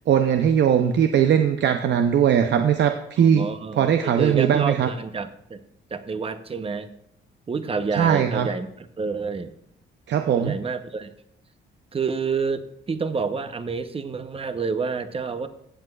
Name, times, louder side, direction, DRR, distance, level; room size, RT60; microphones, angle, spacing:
voice 1, 0.1-3.5 3.8-4.9 8.0-8.5 10.1-10.6, right 8 dB, 65° right, 6 dB, 0.6 m, -20 dB
voice 2, 3.2-5.6 5.9-6.9 7.5-9.5 10.4-11.1 11.9-15.5, right 5 dB, 30° right, 10 dB, 0.8 m, -29 dB
15.5 x 7.7 x 2.4 m, 0.73 s
cardioid pair, 90°, 20 cm